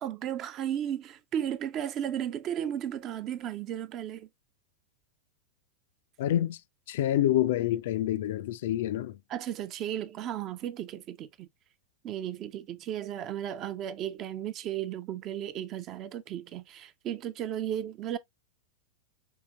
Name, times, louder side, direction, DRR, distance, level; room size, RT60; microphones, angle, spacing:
voice 1, 0.0-4.3 9.3-11.5 12.0-18.2, right 10 dB, 35° right, 0.4 m, -34 dB
voice 2, 6.2-6.6 6.9-9.2, left 12 dB, 55° left, 0.3 m, -27 dB
5.6 x 2.8 x 2.3 m
figure-of-eight pair, 90°, 0 cm